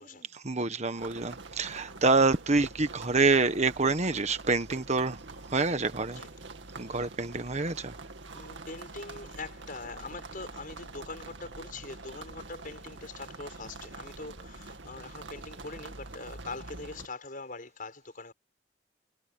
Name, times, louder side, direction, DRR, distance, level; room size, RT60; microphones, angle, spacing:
voice 1, 0.3-2.7 3.1-5.2 5.5-6.2 6.8-7.9, right 3 dB, 40° right, 1.4 m, -26 dB
sound 1, 1.0-17.1, right 3 dB, 85° right, 2.1 m, -45 dB
voice 2, 8.3-18.3, left 3 dB, 50° left, 6.0 m, -43 dB
head